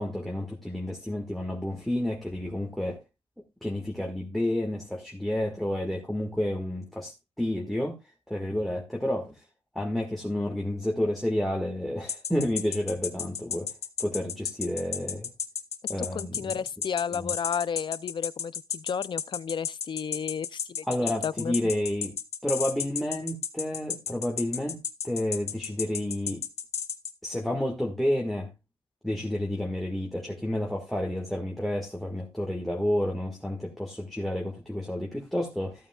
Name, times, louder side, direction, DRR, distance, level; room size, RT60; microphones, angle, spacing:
voice 1, 0.0-3.0 3.6-8.0 8.3-9.4 9.8-13.7 14.0-15.3 15.9-16.5 17.1-17.3 20.9-22.1 22.4-24.8 25.0-26.4 27.2-28.5 29.0-35.9, left 1 dB, ahead, 1.8 m, -30 dB
sound 1, 12.1-27.1, left 7 dB, 80° left, 1.1 m, -32 dB
voice 2, 16.0-20.8 21.2-21.6, left 7 dB, 45° left, 0.4 m, -32 dB
14.5 x 8.8 x 2.4 m
wide cardioid pair, 115°, 11 cm